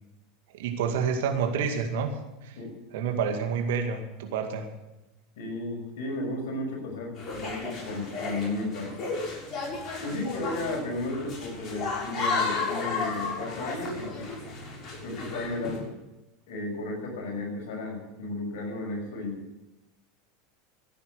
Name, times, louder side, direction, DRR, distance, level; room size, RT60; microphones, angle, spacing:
voice 1, 0.5-2.1 2.4-2.6 2.9-4.7, right 6 dB, 65° right, 5 dB, 2.1 m, -28 dB
voice 2, 5.4-9.0 10.0-14.3 15.0-15.9 16.5-19.4, left 2 dB, 65° left, 0 dB, 6.0 m, -34 dB
sound 1, 7.2-15.8, left 4 dB, 40° left, 6.7 m, -33 dB
16.0 x 9.4 x 8.0 m, 0.99 s
hypercardioid pair, 80°, 0 cm